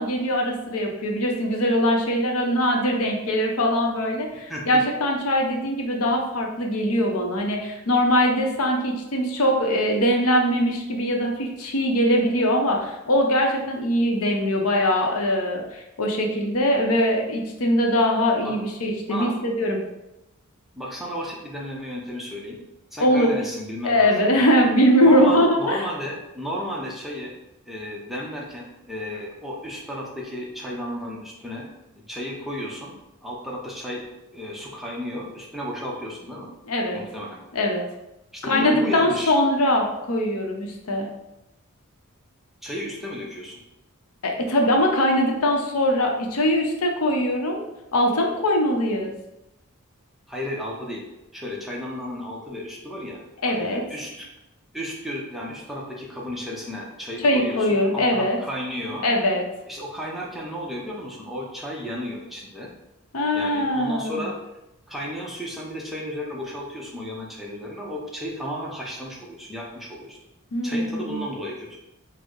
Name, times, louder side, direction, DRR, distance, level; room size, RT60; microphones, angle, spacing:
voice 1, 0.0-19.8 23.0-23.4 23.8-25.8 36.7-37.0 37.5-37.8 38.4-41.1 44.2-47.6 47.9-49.1 53.4-53.8 57.2-58.4 59.0-59.4 63.1-64.3 70.5-71.3, equal, 75° left, 1 dB, 0.7 m, -22 dB
voice 2, 4.3-4.8 18.4-18.5 19.1-19.3 20.7-22.6 22.9-24.5 25.0-27.3 27.7-31.7 32.0-32.9 33.2-34.0 34.3-36.5 36.9-37.4 38.3-39.3 42.6-43.6 50.3-51.0 51.3-54.3 54.7-59.1 59.7-62.7 63.3-64.4 64.9-70.2 70.6-71.8, left 1 dB, ahead, -3 dB, 0.6 m, -33 dB
4.4 x 2.1 x 4.4 m, 0.92 s
head